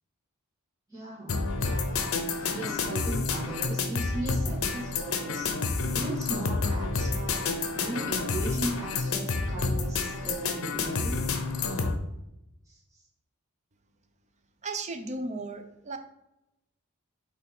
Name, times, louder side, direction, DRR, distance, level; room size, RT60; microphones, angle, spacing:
voice 1, 0.9-11.2 12.7-13.0, right 2 dB, 15° right, -7 dB, 2.3 m, -38 dB
sound 1, 1.3-12.0, left 3 dB, 70° left, 0.8 m, -29 dB
voice 2, 14.6-16.0, right 2 dB, 30° right, 6 dB, 0.7 m, -35 dB
5.7 x 3.5 x 5.3 m, 0.89 s
head